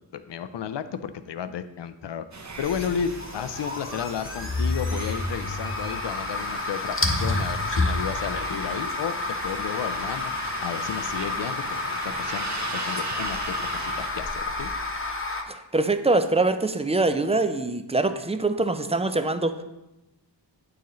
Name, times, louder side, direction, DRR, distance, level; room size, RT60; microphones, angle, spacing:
voice 1, 0.1-2.3 2.6-9.2 9.4-10.3 10.6-12.5 12.7-14.7, left 8 dB, 70° left, 12 dB, 0.5 m, -33 dB
sound 1, 2.3-14.1, right 3 dB, 40° right, 0.7 m, -39 dB
sound 2, 2.5-15.4, left 2 dB, 30° left, 0.9 m, -29 dB
voice 2, 15.5-19.6, right 2 dB, 15° right, 9 dB, 0.4 m, -24 dB
8.6 x 4.7 x 3.1 m, 0.96 s
wide cardioid pair, 60°, 45 cm